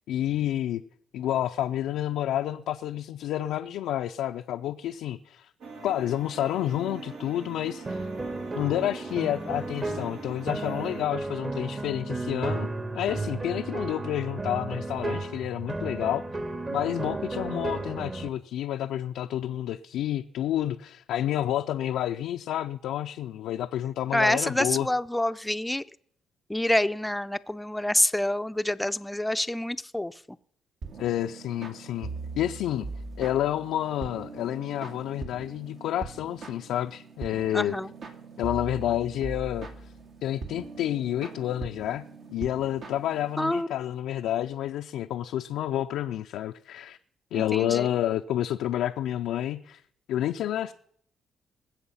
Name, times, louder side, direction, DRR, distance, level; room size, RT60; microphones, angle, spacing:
voice 1, 0.1-0.8 1.1-5.5 5.8-8.1 8.5-12.7 12.9-16.2 16.7-24.9 31.0-32.1 32.4-32.9 33.2-37.8 38.4-39.7 40.2-47.0 47.3-49.8 50.1-50.7, left 12 dB, 85° left, 0.5 m, -29 dB
sound 1, 5.6-11.0, right 4 dB, 80° right, 2.5 m, -43 dB
sound 2, 7.9-18.3, right 2 dB, 30° right, 1.5 m, -33 dB
voice 2, 24.1-25.8 26.5-30.1 37.5-37.9 43.4-43.7 47.3-47.9, left 1 dB, 5° left, 0.6 m, -27 dB
sound 3, 30.8-43.6, right 4 dB, 60° right, 2.3 m, -41 dB
20.5 x 7.9 x 5.6 m
cardioid pair, 90°, 0 cm